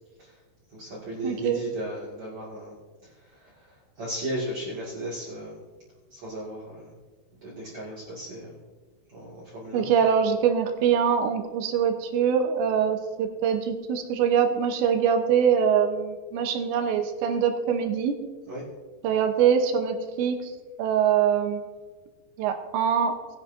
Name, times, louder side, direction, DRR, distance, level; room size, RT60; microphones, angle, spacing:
voice 1, 0.7-2.8 3.3-5.6 6.1-6.9 7.4-8.6 9.1-9.9 18.5-18.6, right 1 dB, 45° right, -8 dB, 3.1 m, -35 dB
voice 2, 1.2-1.6 9.7-18.2 19.0-20.5 20.8-21.6 22.4-23.2, right 7 dB, 85° right, 6 dB, 3.3 m, -23 dB
19.5 x 10.5 x 2.7 m, 1.3 s
omnidirectional pair, 5.1 m